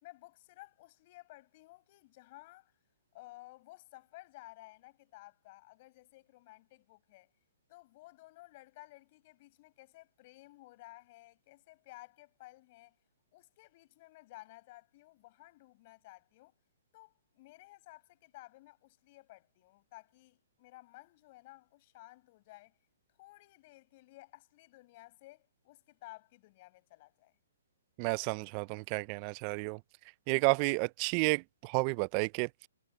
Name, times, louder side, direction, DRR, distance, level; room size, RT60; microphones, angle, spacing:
voice 1, 0.0-2.7 3.1-7.3 7.7-13.0 13.3-16.5 16.9-22.8 23.2-27.3, left 20 dB, 40° left, 5.0 m, -55 dB
voice 2, 28.0-29.8 30.3-32.7, right 31 dB, 30° right, 0.4 m, -31 dB
hypercardioid pair, 150°, 0 cm